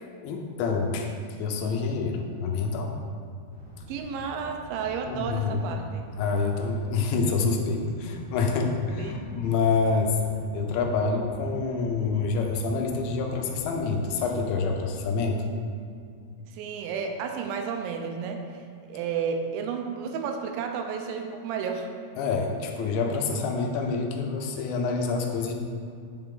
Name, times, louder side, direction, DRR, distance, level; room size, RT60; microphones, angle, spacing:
voice 1, 0.2-1.1 1.4-3.0 5.1-5.6 6.2-10.2 10.5-15.5 22.2-25.5, left 4 dB, 80° left, 2 dB, 3.1 m, -27 dB
sound 1, 3.5-15.2, left 1 dB, 35° left, 2.0 m, -47 dB
voice 2, 3.9-6.0 9.0-9.3 16.5-18.6 18.9-21.9, right 6 dB, 85° right, 4 dB, 3.1 m, -32 dB
9.3 x 7.1 x 3.8 m, 2.3 s
omnidirectional pair, 5.2 m